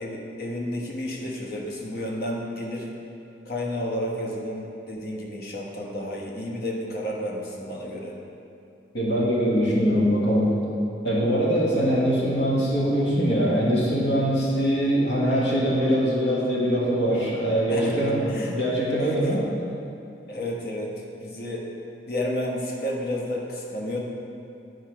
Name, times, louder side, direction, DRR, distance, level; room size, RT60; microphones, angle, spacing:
voice 1, 0.0-2.9 3.4-8.1 17.7-18.6 19.0-19.3 20.3-21.7 22.1-24.0, left 1 dB, 55° left, -1 dB, 1.1 m, -31 dB
voice 2, 8.9-10.5 11.0-19.4, equal, 75° left, -5 dB, 1.6 m, -22 dB
9.8 x 4.8 x 4.7 m, 2.6 s
head